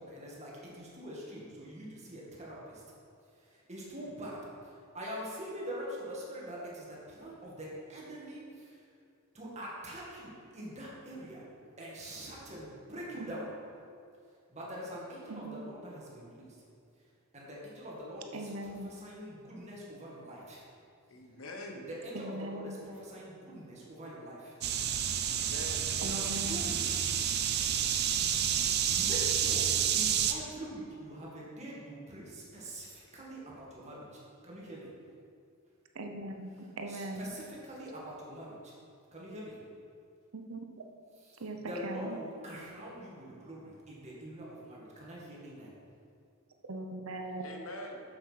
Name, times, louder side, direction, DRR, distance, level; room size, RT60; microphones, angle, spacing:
voice 1, 0.0-2.8 3.3-8.9 9.3-11.5 11.8-13.5 14.5-16.6 17.3-20.6 21.9-24.6 26.0-26.9 28.9-35.0 36.9-38.7 39.1-39.7 41.2-45.8, equal, 35° right, -5 dB, 2.0 m, -44 dB
voice 2, 15.3-15.6 18.3-18.9 22.1-22.9 26.0-26.6 35.9-37.3 40.3-40.6 41.4-41.6 41.8-42.2 46.7-47.5, right 1 dB, 75° right, 5 dB, 0.8 m, -40 dB
voice 3, 21.1-21.9 25.2-25.9 47.4-48.0, left 1 dB, 70° left, 2 dB, 1.2 m, -44 dB
sound 1, 24.6-30.3, right 9 dB, 50° right, 0.6 m, -29 dB
7.2 x 6.8 x 5.8 m, 2.4 s
head